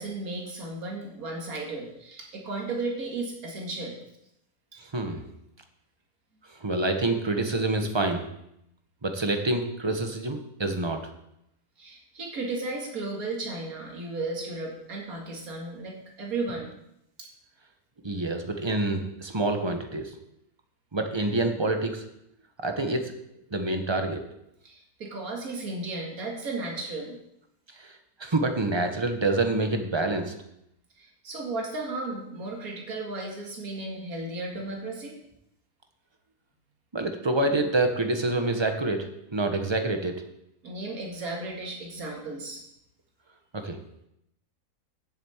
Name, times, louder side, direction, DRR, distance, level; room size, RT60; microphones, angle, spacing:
voice 1, 0.0-4.0 11.8-16.7 17.2-17.3 24.6-27.2 31.0-35.2 40.6-42.6, right 2 dB, 65° right, -1 dB, 2.5 m, -34 dB
voice 2, 4.9-5.2 6.6-8.3 9.0-11.0 18.0-20.1 20.9-22.0 22.6-23.1 23.5-24.2 27.8-27.9 28.2-30.3 36.9-40.2 43.5-43.8, right 2 dB, 20° right, 5 dB, 1.0 m, -27 dB
7.3 x 7.3 x 8.0 m, 0.80 s
omnidirectional pair, 1.7 m